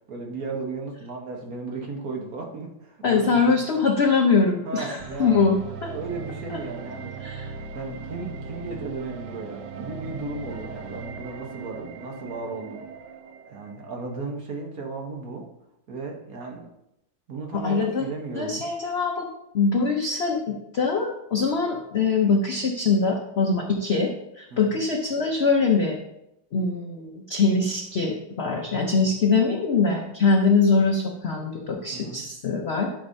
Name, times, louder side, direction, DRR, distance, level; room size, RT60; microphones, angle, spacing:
voice 1, 0.1-3.6 4.6-5.4 5.9-7.2 7.7-12.8 13.5-15.5 15.9-16.7 17.3-18.6 24.5-24.8 31.9-32.2, right 3 dB, 50° right, 1 dB, 1.4 m, -35 dB
voice 2, 3.0-5.9 6.5-6.6 7.2-7.5 17.5-18.0 18.3-19.3 19.5-26.0 26.5-32.9, left 4 dB, 85° left, 2 dB, 0.5 m, -23 dB
sound 1, 5.0-14.0, right 5 dB, 70° right, 1.2 m, -38 dB
12.0 x 6.4 x 2.7 m, 0.85 s
omnidirectional pair, 2.1 m